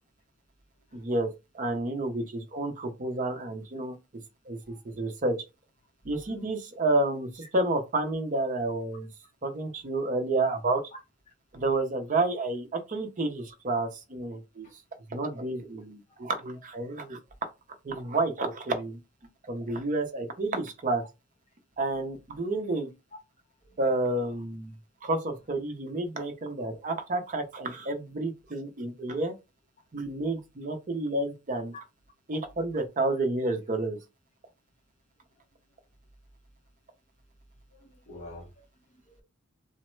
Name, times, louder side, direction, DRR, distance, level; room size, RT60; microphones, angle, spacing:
voice 1, 0.9-1.3 1.5-4.0 4.5-5.4 6.0-9.1 9.4-10.8 11.5-14.7 15.1-17.2 17.8-19.0 19.5-21.0 21.8-22.9 23.8-24.8 25.0-29.3 29.9-31.7 32.3-34.0, right 2 dB, 35° right, 0.5 m, -30 dB
voice 2, 37.7-39.2, left 1 dB, 30° left, 0.8 m, -48 dB
3.0 x 2.1 x 3.0 m
head